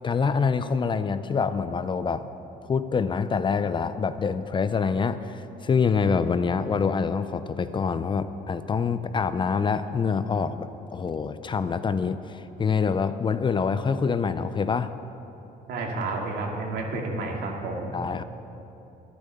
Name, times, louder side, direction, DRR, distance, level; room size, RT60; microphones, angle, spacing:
voice 1, 0.0-2.2 2.6-14.9 17.9-18.2, left 5 dB, 30° left, 12 dB, 0.5 m, -26 dB
voice 2, 15.7-17.9, right 2 dB, 75° right, 0 dB, 2.4 m, -30 dB
12.5 x 10.0 x 7.0 m, 2.9 s
cardioid pair, 110°, 17 cm